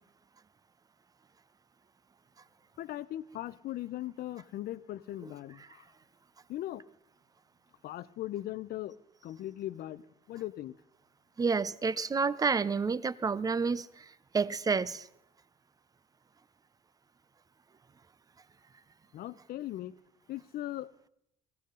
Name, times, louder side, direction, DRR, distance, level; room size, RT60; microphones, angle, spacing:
voice 1, 2.8-5.9 6.5-6.8 7.8-9.0 9.2-10.0 10.3-10.8 19.1-19.9 20.3-20.9, left 14 dB, 65° left, 0.6 m, -39 dB
voice 2, 11.4-14.1 14.3-15.1, right 5 dB, 20° right, 0.5 m, -29 dB
18.0 x 15.5 x 3.8 m
cardioid pair, 110°, 17 cm